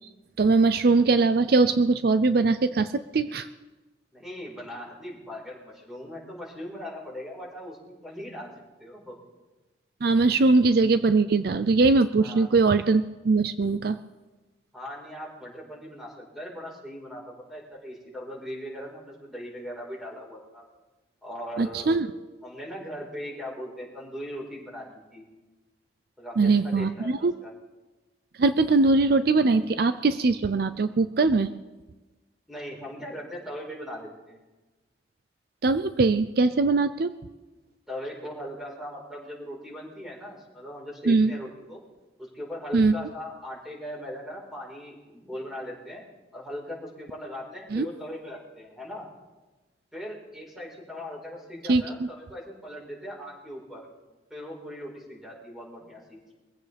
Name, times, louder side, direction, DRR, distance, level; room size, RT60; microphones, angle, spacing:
voice 1, 0.4-3.5 10.0-14.0 21.6-22.1 26.4-27.3 28.4-31.5 35.6-37.1 41.1-41.3 42.7-42.9 47.7-47.9 51.7-51.8, right 3 dB, 60° right, 12 dB, 0.5 m, -21 dB
voice 2, 4.1-8.5 8.8-9.2 12.2-12.5 14.7-20.6 21.2-22.0 22.4-25.2 26.2-27.5 32.5-34.4 37.9-41.8 42.2-46.0 46.3-49.1 49.9-53.9 54.3-56.2, equal, ahead, -3 dB, 4.4 m, -39 dB
23.0 x 15.5 x 3.4 m, 1.2 s
head